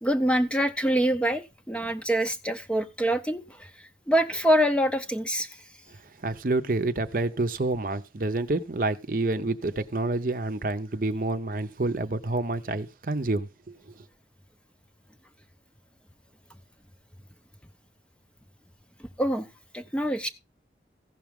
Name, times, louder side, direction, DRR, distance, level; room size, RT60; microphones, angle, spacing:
voice 1, 0.0-3.7 4.1-5.5 19.2-19.5 19.7-20.3, equal, 5° left, 0.6 m, -25 dB
voice 2, 6.2-13.7, right 2 dB, 50° right, 0.7 m, -28 dB
15.5 x 6.1 x 3.5 m
head